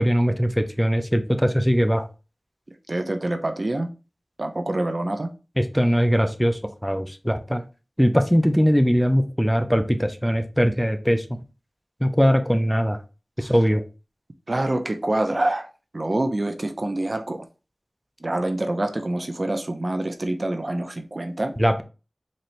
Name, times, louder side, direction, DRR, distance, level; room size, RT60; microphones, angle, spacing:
voice 1, 0.0-2.1 5.6-7.6 8.0-11.2 12.0-13.0 13.4-13.8 21.6-21.8, equal, 5° left, 0.5 m, -21 dB
voice 2, 2.9-3.9 4.4-5.3 13.4-13.5 14.5-15.7 15.9-17.5 18.2-21.5, right 1 dB, 45° right, 0.5 m, -26 dB
4.1 x 2.6 x 3.1 m
wide cardioid pair, 50°, 0 cm